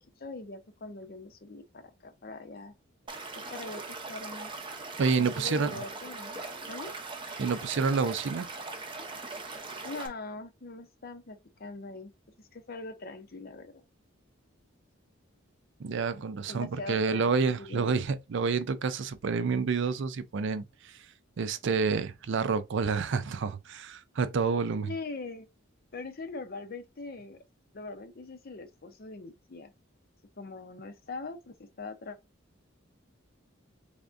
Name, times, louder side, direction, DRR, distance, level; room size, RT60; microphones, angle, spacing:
voice 1, 0.2-2.7 3.5-3.8 4.1-4.5 5.2-6.4 6.7-6.9 9.8-12.1 12.4-13.8 16.5-17.3 17.6-18.0 24.8-25.5 25.9-27.4 27.7-29.7 30.4-32.2, left 3 dB, 50° left, 0.7 m, -42 dB
Stream / Liquid, 3.1-10.1, right 3 dB, 25° right, 0.7 m, -40 dB
voice 2, 5.0-5.7 7.4-8.5 15.8-21.0 21.4-24.9, right 5 dB, 60° right, 0.4 m, -29 dB
3.5 x 3.4 x 2.5 m
head